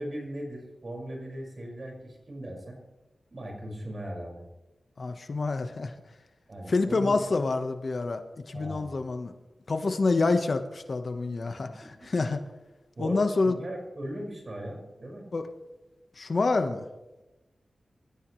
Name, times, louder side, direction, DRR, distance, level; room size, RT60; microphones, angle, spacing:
voice 1, 0.0-2.8 3.3-4.4 6.5-7.2 8.5-8.9 11.6-12.3 13.0-15.2, right 1 dB, 50° right, 0 dB, 5.6 m, -38 dB
voice 2, 5.0-5.9 6.7-9.3 9.7-12.4 13.0-13.6 15.3-15.5 16.2-16.9, left 3 dB, 60° left, 7 dB, 1.3 m, -27 dB
24.0 x 14.0 x 3.3 m, 1.1 s
cardioid pair, 50°, 0 cm